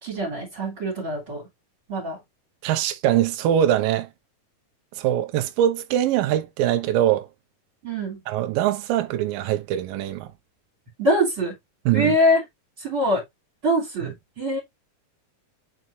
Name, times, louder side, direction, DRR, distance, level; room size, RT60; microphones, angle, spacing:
voice 1, 0.0-1.5 1.9-2.2 7.8-8.2 11.0-11.5 11.9-12.4 12.8-13.2 13.6-14.6, equal, 35° right, 3.6 m, -23 dB
voice 2, 2.6-4.1 5.0-7.3 8.3-10.3 11.9-12.1, right 11 dB, 80° right, 2.5 m, -22 dB
9.3 x 4.4 x 2.6 m
omnidirectional pair, 4.1 m